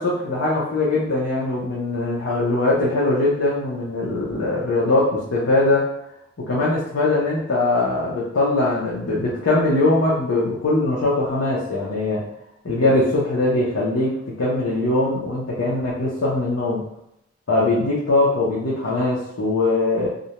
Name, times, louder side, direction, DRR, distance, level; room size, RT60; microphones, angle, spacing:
voice 1, 0.0-5.9 6.4-12.2 12.6-14.1 14.4-16.8 17.5-20.1, left 2 dB, 85° left, -7 dB, 0.7 m, -21 dB
2.5 x 2.1 x 2.9 m, 0.76 s
head